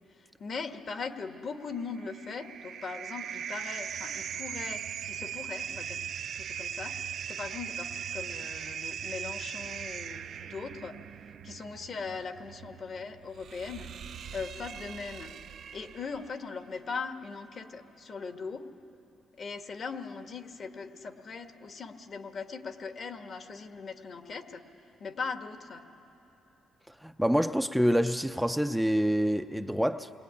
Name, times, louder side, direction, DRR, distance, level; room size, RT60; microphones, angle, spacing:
voice 1, 0.4-6.0 6.3-11.0 11.4-13.9 14.3-15.3 15.7-18.7 19.4-24.6 25.0-25.8, left 5 dB, 50° left, 1.7 m, -40 dB
sound 1, 1.8-16.3, right 8 dB, 65° right, 0.6 m, -40 dB
voice 2, 27.0-30.1, equal, ahead, 0.6 m, -26 dB
28.0 x 21.5 x 9.8 m
cardioid pair, 90°, 0 cm